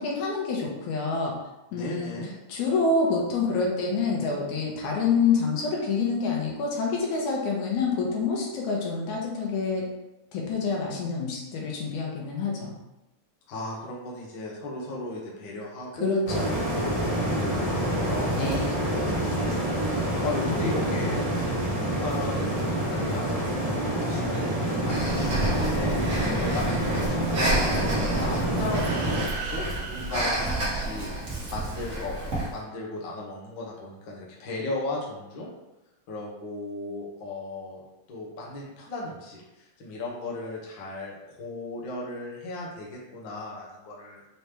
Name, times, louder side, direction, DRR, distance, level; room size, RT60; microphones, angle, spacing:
voice 1, 0.0-1.3 1.7-2.1 2.5-9.9 10.3-12.7 16.0-16.5 18.3-18.7, left 4 dB, 75° left, -2 dB, 2.2 m, -27 dB
voice 2, 1.7-2.3 13.5-16.2 16.7-18.3 19.3-32.2 32.5-35.5 36.1-44.2, left 2 dB, 60° left, -4 dB, 1.2 m, -36 dB
sound 1, 16.3-29.2, right 1 dB, 30° left, 0.5 m, -27 dB
Breathing, 24.9-32.6, right 2 dB, 50° right, 1.0 m, -30 dB
sound 2, 28.6-31.5, right 4 dB, 80° right, 2.1 m, -40 dB
5.5 x 2.9 x 3.3 m, 0.95 s
omnidirectional pair, 3.5 m